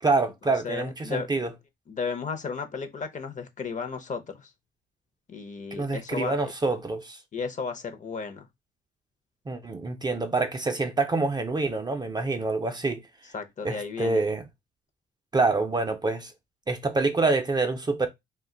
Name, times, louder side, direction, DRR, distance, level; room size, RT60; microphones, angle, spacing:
voice 1, 0.0-1.5 5.8-7.2 9.5-13.0 13.6-14.4 15.3-16.3 16.7-18.1, right 3 dB, 20° right, 0.4 m, -26 dB
voice 2, 0.6-1.3 1.9-4.5 5.3-6.3 7.3-8.5 13.3-14.2, left 5 dB, 40° left, 0.6 m, -34 dB
2.3 x 2.2 x 3.6 m
cardioid pair, 90°, 20 cm